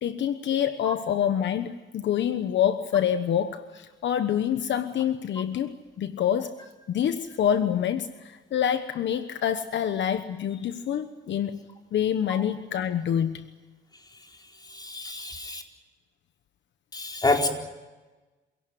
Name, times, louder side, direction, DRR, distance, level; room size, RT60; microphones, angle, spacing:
voice 1, 0.0-6.5 6.9-13.5, left 9 dB, 65° left, 10 dB, 1.2 m, -27 dB
voice 2, 14.7-15.6 16.9-17.5, left 2 dB, 20° left, 2 dB, 4.5 m, -27 dB
27.0 x 17.5 x 9.2 m, 1.2 s
cardioid pair, 90°, 20 cm